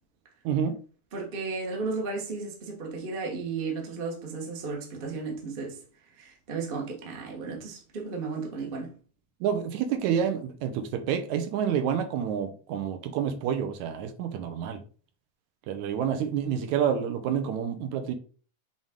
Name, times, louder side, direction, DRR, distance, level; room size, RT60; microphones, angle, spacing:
voice 1, 1.1-5.8 6.2-8.9, right 4 dB, 50° right, 0.6 m, -34 dB
voice 2, 9.4-14.8 15.7-18.1, right 8 dB, 75° right, 2.0 m, -28 dB
7.2 x 3.9 x 3.7 m
omnidirectional pair, 3.6 m